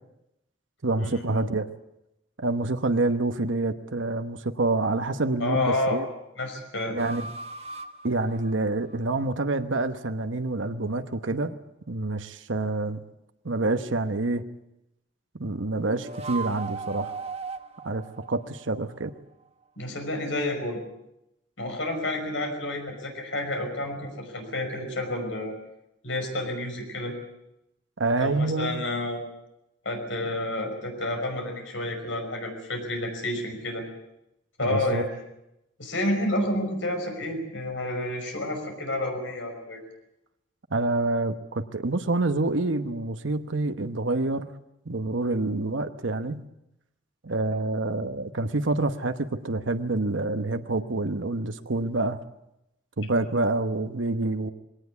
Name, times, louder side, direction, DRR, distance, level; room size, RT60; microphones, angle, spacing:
voice 1, 0.8-1.7 2.4-6.1 6.9-7.3 8.0-11.5 11.9-13.0 13.4-14.5 15.3-17.2 17.8-19.1 28.0-28.8 34.6-35.0 40.7-44.5 44.9-46.4 47.2-52.2 53.0-54.5, right 2 dB, 85° right, 8 dB, 1.1 m, -27 dB
voice 2, 5.4-6.0 6.4-7.0 19.8-20.8 21.6-25.5 26.0-27.2 28.2-29.2 29.8-33.9 34.6-35.2 35.8-39.8, left 1 dB, 90° left, 4 dB, 5.5 m, -30 dB
sound 1, 7.0-9.3 15.8-19.2, right 4 dB, 35° right, 1.3 m, -38 dB
21.5 x 18.0 x 8.3 m, 0.86 s
head